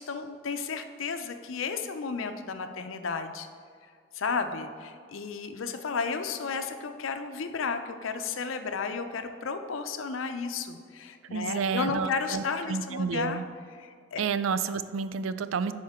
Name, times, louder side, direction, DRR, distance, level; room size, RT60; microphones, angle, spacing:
voice 1, 0.0-3.5 4.1-13.4 13.8-14.2, left 5 dB, 85° left, 8 dB, 0.6 m, -33 dB
voice 2, 11.3-13.4 14.2-15.7, right 5 dB, 85° right, 13 dB, 0.4 m, -30 dB
11.0 x 4.4 x 3.6 m, 2.1 s
head